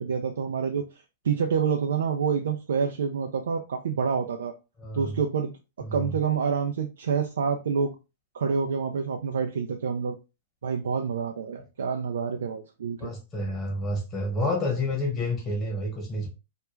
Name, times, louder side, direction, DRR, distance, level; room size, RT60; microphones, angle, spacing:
voice 1, 0.0-4.5 4.9-5.5 5.9-7.9 8.3-10.2 10.6-13.1, right 6 dB, 85° right, 5 dB, 0.3 m, -27 dB
voice 2, 4.8-5.2 5.8-6.2 13.0-16.3, left 1 dB, 20° left, 0 dB, 1.1 m, -29 dB
2.3 x 2.1 x 3.0 m, 0.29 s
hypercardioid pair, 130°, 0 cm